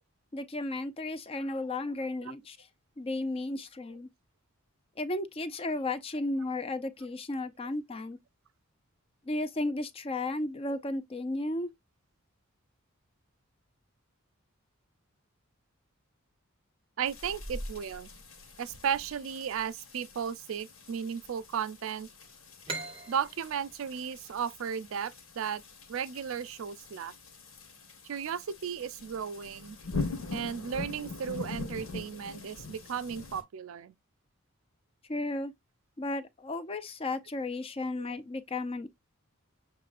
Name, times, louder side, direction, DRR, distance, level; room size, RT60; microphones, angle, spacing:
voice 1, 0.3-2.6 3.0-4.1 5.0-8.2 9.3-11.7 35.1-35.5 36.0-38.9, left 2 dB, 25° left, 0.4 m, -34 dB
voice 2, 17.0-18.1 18.6-22.1 23.1-25.6 25.9-27.1 28.0-29.8 30.3-33.9 38.0-38.2, right 7 dB, 65° right, 0.4 m, -35 dB
sound 1, 17.1-33.4, left 3 dB, 75° left, 1.6 m, -43 dB
sound 2, 22.7-26.1, right 3 dB, 25° right, 0.6 m, -43 dB
6.7 x 3.1 x 2.4 m
head